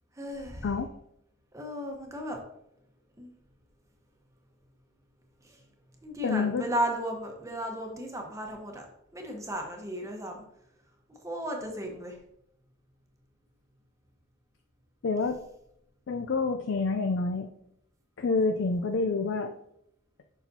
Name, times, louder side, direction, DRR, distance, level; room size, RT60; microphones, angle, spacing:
voice 1, 0.1-0.7 1.5-2.4 3.2-3.3 5.4-5.6 6.0-8.9 9.1-10.4 11.1-12.2, right 1 dB, 15° right, 1 dB, 1.0 m, -35 dB
voice 2, 6.2-6.6 15.0-15.4 16.1-17.5 18.2-19.5, left 4 dB, 60° left, 6 dB, 0.4 m, -27 dB
6.9 x 5.9 x 2.7 m, 0.77 s
head